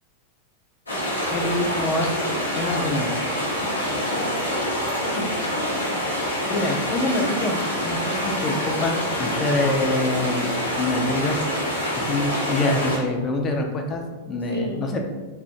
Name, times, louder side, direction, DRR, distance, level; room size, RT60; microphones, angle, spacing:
sound 1, 0.9-13.0, equal, 80° left, 0.6 m, -26 dB
voice 1, 1.3-2.2 2.5-3.1 6.5-11.4 11.9-15.0, left 2 dB, 25° left, 2 dB, 0.3 m, -25 dB
voice 2, 3.7-5.5 14.5-14.9, right 1 dB, 85° right, -2 dB, 0.5 m, -34 dB
2.4 x 2.1 x 2.7 m, 1.2 s
figure-of-eight pair, 90°, 0 cm